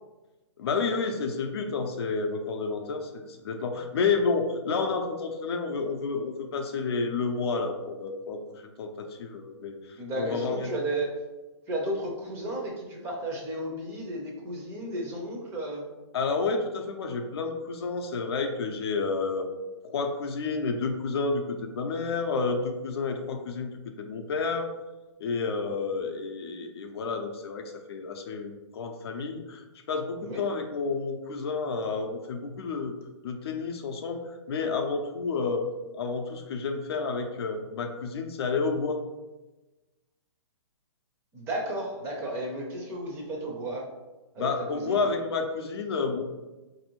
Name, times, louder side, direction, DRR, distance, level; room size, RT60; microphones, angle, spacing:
voice 1, 0.6-10.7 16.1-19.5 19.8-23.7 24.0-24.7 25.2-32.9 33.2-35.7 35.9-39.0 44.4-46.2, left 4 dB, 55° left, 4 dB, 0.5 m, -30 dB
voice 2, 9.9-11.1 11.7-15.8 30.2-30.5 41.3-43.9 44.3-45.1, right 1 dB, 15° right, -1 dB, 0.6 m, -33 dB
4.0 x 2.6 x 2.9 m, 1.1 s
hypercardioid pair, 155°, 15 cm